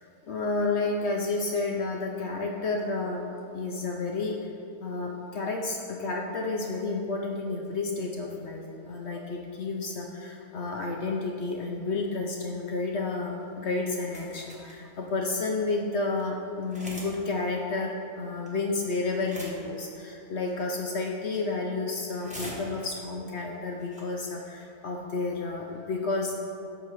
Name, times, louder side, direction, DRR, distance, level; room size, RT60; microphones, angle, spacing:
voice 1, 0.0-3.3 3.5-4.4 4.8-26.4, left 3 dB, 65° left, 0 dB, 0.7 m, -31 dB
sound 1, 14.0-14.8 15.4-15.5 15.7-15.8 16.1-16.2 16.7-17.1 17.4-17.5 18.5-18.8 19.1-19.8 20.4-20.7 21.1-21.5 21.9-23.0 23.5-23.6 23.8-24.0 24.4-24.6, equal, 5° right, 0.9 m, -43 dB
8.1 x 2.9 x 6.2 m, 2.7 s
omnidirectional pair, 1.6 m